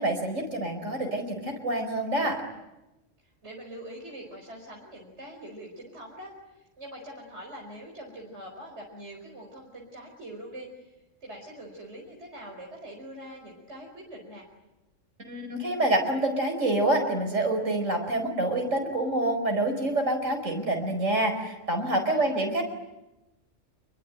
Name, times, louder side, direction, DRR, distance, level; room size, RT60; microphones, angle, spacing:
voice 1, 0.0-2.4 15.3-22.6, right 1 dB, 80° right, 4 dB, 5.1 m, -27 dB
voice 2, 3.2-10.9 11.2-14.5 22.0-22.4, right 1 dB, 60° right, -1 dB, 5.2 m, -44 dB
28.0 x 23.0 x 9.1 m, 0.98 s
omnidirectional pair, 1.3 m